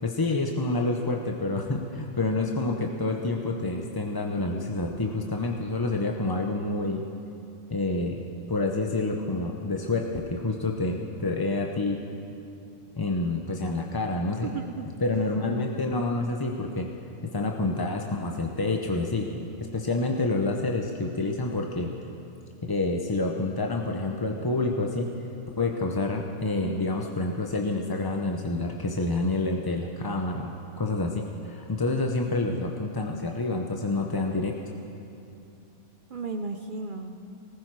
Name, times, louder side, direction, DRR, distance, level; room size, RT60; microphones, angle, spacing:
voice 1, 0.0-7.0 7.7-8.2 8.5-12.0 13.0-14.5 15.0-16.9 17.3-21.9 22.7-25.1 25.6-34.6, left 2 dB, 25° left, 2 dB, 0.5 m, -28 dB
voice 2, 14.4-14.9 36.1-37.3, right 4 dB, 50° right, 6 dB, 0.6 m, -34 dB
19.5 x 14.5 x 4.7 m, 2.7 s
omnidirectional pair, 1.5 m